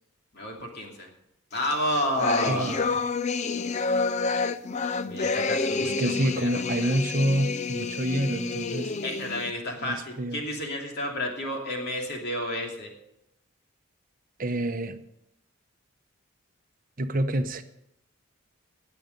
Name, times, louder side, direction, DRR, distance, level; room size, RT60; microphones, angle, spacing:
voice 1, 0.3-1.1 1.5-2.8 5.1-6.9 9.0-12.9, left 1 dB, 50° left, 1 dB, 2.7 m, -31 dB
sound 1, 1.6-9.5, left 4 dB, 30° left, 0.4 m, -29 dB
voice 2, 2.4-2.9 5.8-8.9 9.8-10.4 14.4-15.0 17.0-17.6, right 1 dB, 40° right, 9 dB, 0.9 m, -27 dB
19.5 x 7.1 x 5.3 m, 0.81 s
head